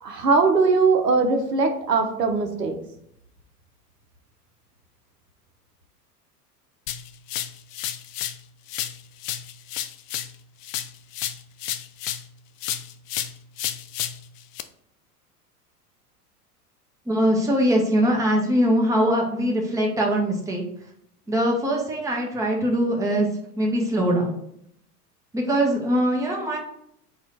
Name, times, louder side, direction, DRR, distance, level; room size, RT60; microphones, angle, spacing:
voice 1, 0.0-2.8, right 4 dB, 85° right, 4 dB, 0.8 m, -20 dB
sound 1, 6.9-8.4 8.7-12.3 12.6-14.6, left 11 dB, 55° left, 0.5 m, -32 dB
voice 2, 17.1-20.6 21.3-23.3 23.6-24.4 25.3-26.6, equal, 5° right, 0 dB, 0.7 m, -22 dB
4.2 x 2.5 x 4.2 m, 0.73 s
figure-of-eight pair, 85°, 48 cm